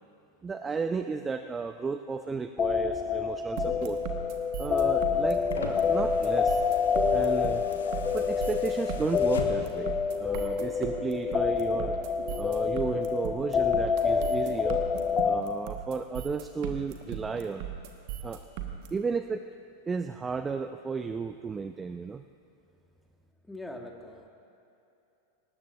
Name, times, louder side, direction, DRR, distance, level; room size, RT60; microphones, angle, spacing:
voice 1, 0.4-4.0 4.6-6.6 7.1-7.6 8.1-12.0 12.4-14.8 15.2-17.7 18.2-18.4 18.9-19.4 19.9-22.2, right 5 dB, 15° right, 9 dB, 0.4 m, -33 dB
sound 1, 2.6-15.4, left 6 dB, 20° left, 0.6 m, -27 dB
sound 2, 3.6-18.9, right 10 dB, 45° right, 1.5 m, -37 dB
sound 3, 4.8-9.9 11.1-11.2, left 4 dB, 65° left, 1.4 m, -42 dB
voice 2, 23.5-24.3, left 1 dB, 5° left, 2 dB, 1.7 m, -42 dB
23.0 x 19.0 x 2.7 m, 2.7 s
figure-of-eight pair, 90°, 0 cm